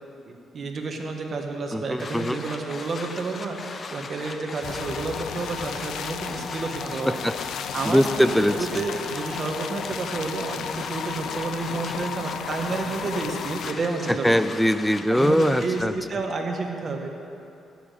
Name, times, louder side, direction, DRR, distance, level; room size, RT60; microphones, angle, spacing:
voice 1, 0.5-7.2 7.7-14.4 15.1-17.1, right 3 dB, 45° right, 3 dB, 1.7 m, -30 dB
voice 2, 1.7-2.4 7.0-7.3 7.9-8.8 14.2-15.9, equal, 5° left, 12 dB, 0.6 m, -22 dB
sound 1, 2.0-15.8, left 4 dB, 40° left, 0.8 m, -39 dB
sound 2, 4.6-13.7, left 8 dB, 75° left, 0.5 m, -34 dB
13.0 x 7.3 x 9.3 m, 2.7 s
cardioid pair, 90°, 0 cm